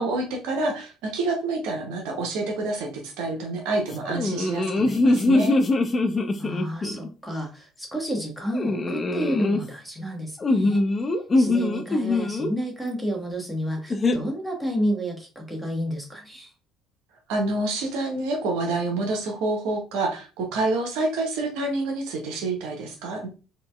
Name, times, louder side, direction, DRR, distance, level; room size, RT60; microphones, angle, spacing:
voice 1, 0.0-5.6 17.3-23.3, right 2 dB, 60° right, 2 dB, 0.6 m, -28 dB
sound 1, 4.0-7.1 8.5-9.6 10.4-12.5 13.9-14.2, left 2 dB, 30° left, 0.4 m, -22 dB
voice 2, 6.4-10.8 11.3-16.5, equal, 5° left, 1 dB, 1.1 m, -30 dB
3.9 x 2.2 x 2.2 m, 0.33 s
figure-of-eight pair, 55°, 0 cm